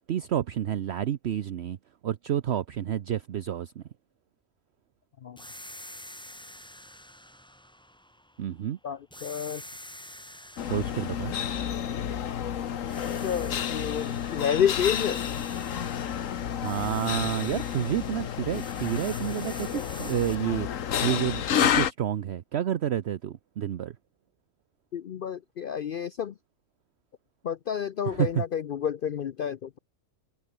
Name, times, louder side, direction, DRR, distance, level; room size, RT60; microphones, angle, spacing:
voice 1, 0.1-1.8 2.0-3.8 8.4-8.8 10.6-11.3 16.6-20.7 21.0-23.9 28.1-28.4, right 10 dB, 60° right, 0.9 m, -29 dB
sound 1, 5.4-8.6 9.1-12.5 12.9-20.4, equal, 5° left, 1.4 m, -47 dB
voice 2, 8.8-9.6 13.0-15.2 24.9-26.3 27.4-29.8, left 8 dB, 55° left, 0.6 m, -30 dB
sound 2, 10.6-21.9, left 9 dB, 80° left, 1.4 m, -30 dB
omnidirectional pair, 1.3 m